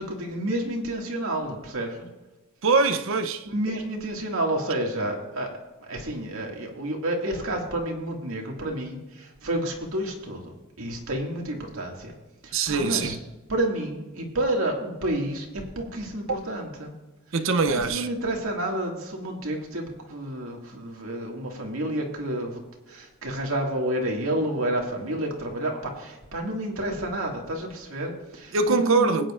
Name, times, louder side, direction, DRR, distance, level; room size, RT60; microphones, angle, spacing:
voice 1, 0.0-1.9 3.5-5.5 5.8-12.1 12.4-13.2 13.5-16.9 17.7-22.6 22.9-29.1, right 1 dB, 90° right, 2.1 m, -30 dB
voice 2, 2.6-3.5 12.5-13.2 16.3-16.4 17.3-18.1 28.5-29.3, right 4 dB, 70° right, 0.7 m, -23 dB
20.5 x 9.3 x 2.5 m
head